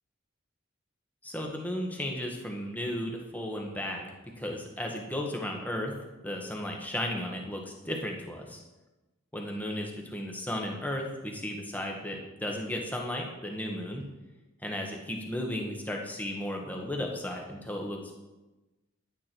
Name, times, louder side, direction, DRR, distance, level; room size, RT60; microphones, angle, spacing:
voice 1, 1.2-4.0 4.4-5.9 6.2-8.6 9.3-14.0 14.6-18.0, left 1 dB, 10° left, 1 dB, 1.3 m, -34 dB
11.0 x 9.5 x 4.5 m, 1.1 s
head